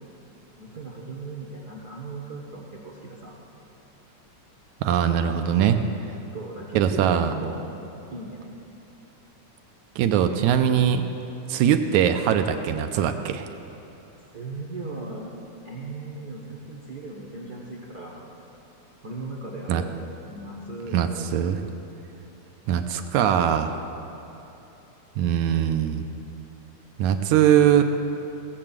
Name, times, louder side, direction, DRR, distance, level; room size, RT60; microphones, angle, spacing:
voice 1, 0.6-3.4 6.3-7.7 8.1-8.6 11.8-12.0 14.3-15.3 15.6-18.3 19.0-19.9 20.3-21.5, right 3 dB, 55° right, -3 dB, 1.1 m, -37 dB
voice 2, 4.8-5.8 6.8-7.3 10.0-11.1 11.5-13.5 19.7-19.8 20.9-21.6 22.7-23.8 25.2-26.0 27.0-27.8, right 9 dB, 80° right, 8 dB, 1.9 m, -21 dB
18.0 x 7.6 x 7.4 m, 3.0 s
omnidirectional pair, 3.6 m